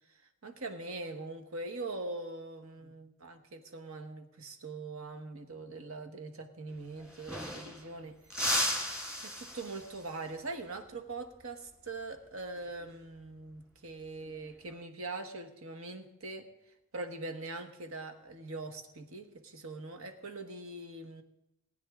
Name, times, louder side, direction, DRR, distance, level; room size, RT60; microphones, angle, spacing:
voice 1, 0.1-8.2 9.2-16.5 16.9-21.2, right 3 dB, 80° right, 7 dB, 1.3 m, -42 dB
sound 1, 6.7-6.8 7.0-7.9 8.3-10.1 12.6-12.9 14.3-14.7, left 1 dB, 5° right, 1.8 m, -35 dB
19.5 x 9.4 x 3.7 m, 0.87 s
head